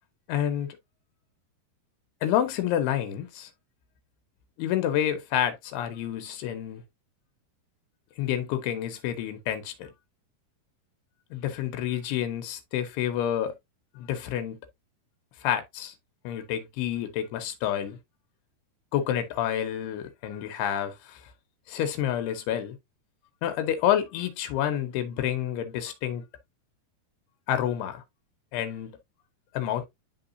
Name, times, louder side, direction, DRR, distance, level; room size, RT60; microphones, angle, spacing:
voice 1, 0.3-0.8 2.2-3.5 4.6-6.8 8.2-9.9 11.3-13.5 14.0-14.6 15.4-15.9 16.2-18.0 18.9-21.2 21.7-22.8 23.4-26.2 27.5-28.0 28.5-28.9 29.5-29.9, left 10 dB, 85° left, 2.8 m, -29 dB
10.5 x 3.8 x 2.5 m
omnidirectional pair, 4.5 m